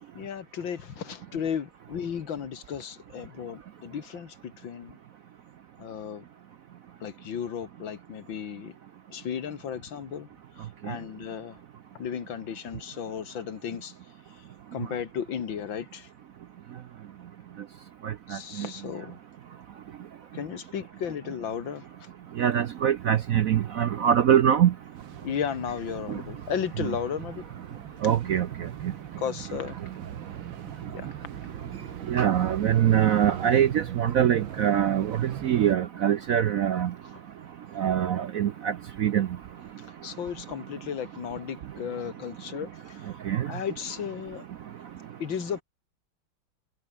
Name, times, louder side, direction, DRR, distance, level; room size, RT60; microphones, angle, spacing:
voice 1, 0.1-5.0 5.8-6.2 7.0-8.8 9.1-10.3 10.6-11.6 12.0-14.0 14.3-14.4 14.7-16.1 18.3-19.2 20.3-22.1 25.2-27.4 29.2-29.8 30.9-31.1 40.0-43.2 43.5-44.4 45.2-45.6, left 8 dB, 75° left, 2.4 m, -34 dB
voice 2, 22.4-24.7 28.0-28.5 32.1-36.9 37.8-38.7 39.0-39.3 43.3-43.5, right 10 dB, 65° right, 0.8 m, -23 dB
sound 1, 24.9-35.7, right 10 dB, 80° right, 2.0 m, -40 dB
omnidirectional pair, 2.1 m